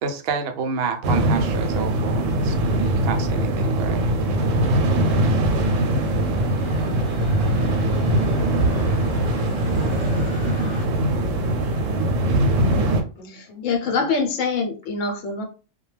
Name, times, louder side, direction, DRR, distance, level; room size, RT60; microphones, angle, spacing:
voice 1, 0.0-4.1, right 5 dB, 60° right, 0.7 m, -29 dB
sound 1, 1.0-13.0, right 1 dB, 90° right, 0.9 m, -21 dB
sound 2, 5.4-10.8, equal, 40° left, 0.4 m, -39 dB
voice 2, 11.6-14.0, right 2 dB, 55° left, 0.9 m, -43 dB
voice 3, 13.3-15.4, left 4 dB, 90° left, 1.0 m, -24 dB
2.3 x 2.2 x 3.1 m
omnidirectional pair, 1.3 m